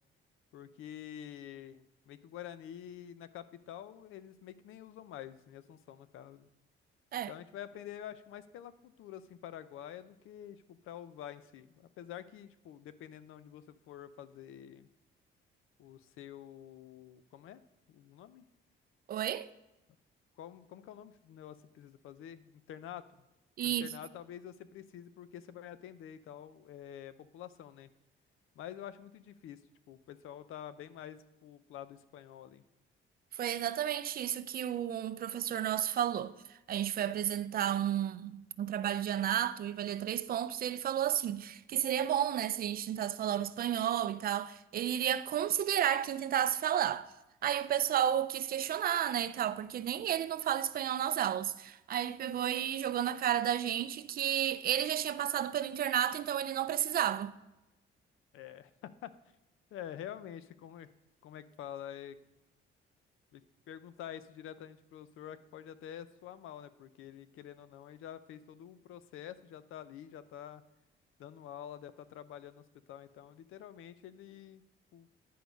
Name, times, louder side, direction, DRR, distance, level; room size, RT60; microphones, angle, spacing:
voice 1, 0.5-6.5 7.3-14.9 15.8-17.6 17.9-18.4 20.4-23.0 23.6-27.9 28.6-29.6 29.9-32.6 58.3-59.1 59.7-60.9 61.2-62.2 63.3-63.4 63.7-70.6 71.2-74.6 74.9-75.1, left 10 dB, 80° left, 0.6 m, -47 dB
voice 2, 19.1-19.5 23.6-23.9 33.3-47.1 47.4-57.3, right 10 dB, 45° right, 0.4 m, -32 dB
10.0 x 4.7 x 5.1 m
cardioid pair, 145°, 21 cm